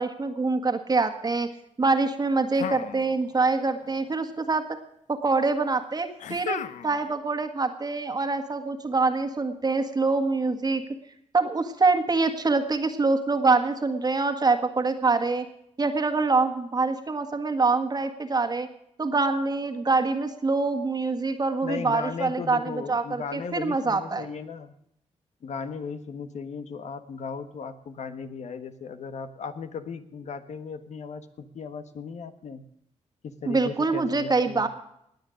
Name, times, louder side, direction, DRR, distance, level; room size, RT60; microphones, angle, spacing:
voice 1, 0.0-1.5 1.8-4.6 5.1-10.8 11.3-15.4 15.8-18.7 19.0-24.2 33.5-34.7, right 3 dB, 35° right, 6 dB, 1.7 m, -25 dB
sound 1, 2.5-3.6 3.8-4.6 6.2-7.1, left 9 dB, 85° left, 0.7 m, -36 dB
voice 2, 21.6-24.7 25.4-32.6 33.2-34.7, left 5 dB, 70° left, 10 dB, 1.4 m, -36 dB
20.0 x 8.0 x 6.3 m, 0.75 s
cardioid pair, 95°, 12 cm